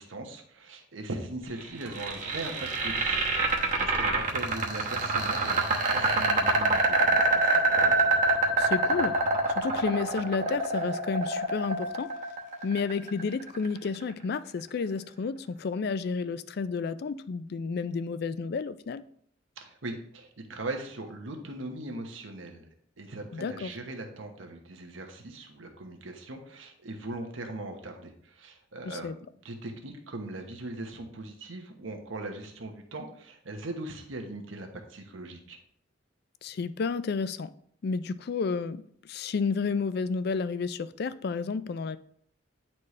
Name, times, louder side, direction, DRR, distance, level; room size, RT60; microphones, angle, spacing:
voice 1, 0.0-5.6 5.9-7.7 19.6-22.7 23.0-29.1 29.4-35.6, right 2 dB, 85° right, 4 dB, 1.1 m, -40 dB
sound 1, 1.6-13.7, right 3 dB, 40° right, 1.0 m, -26 dB
voice 2, 8.6-9.2 9.5-12.1 12.6-19.0 23.3-23.7 28.9-29.1 36.4-37.5 37.8-42.0, left 5 dB, 55° left, 14 dB, 0.3 m, -31 dB
9.5 x 4.3 x 3.2 m, 0.63 s
head